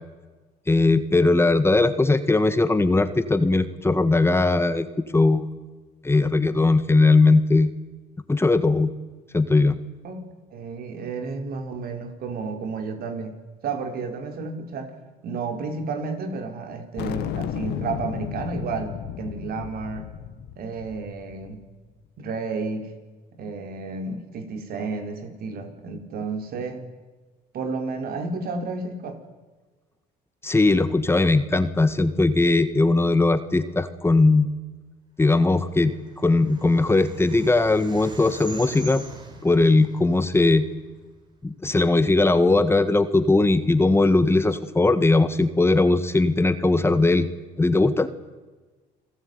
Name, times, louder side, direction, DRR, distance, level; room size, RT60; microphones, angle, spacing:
voice 1, 0.7-4.9 5.1-5.5 6.0-7.7 8.3-8.9 9.3-9.8 30.4-34.5 35.2-35.9 36.2-39.0 39.4-40.7 41.4-47.3 47.6-48.1, left 3 dB, 15° left, 11 dB, 1.7 m, -19 dB
voice 2, 10.0-14.9 15.2-20.1 20.6-21.6 22.2-22.9 23.3-26.8 27.5-29.2, right 4 dB, 65° right, 6 dB, 4.6 m, -32 dB
sound 1, 17.0-21.7, left 11 dB, 80° left, 1.9 m, -33 dB
sound 2, 35.8-41.2, right 3 dB, 25° right, 5.1 m, -42 dB
29.0 x 19.0 x 9.6 m, 1.3 s
cardioid pair, 110°, 17 cm